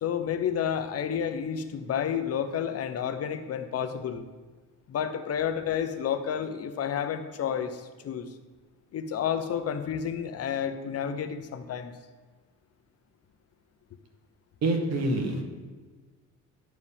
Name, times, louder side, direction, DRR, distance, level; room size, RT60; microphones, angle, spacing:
voice 1, 0.0-4.2 4.9-8.3 8.9-11.9, left 8 dB, 50° left, 9 dB, 0.8 m, -30 dB
voice 2, 14.6-15.4, right 2 dB, 55° right, 4 dB, 1.7 m, -26 dB
11.0 x 4.7 x 7.2 m, 1.4 s
cardioid pair, 130°, 32 cm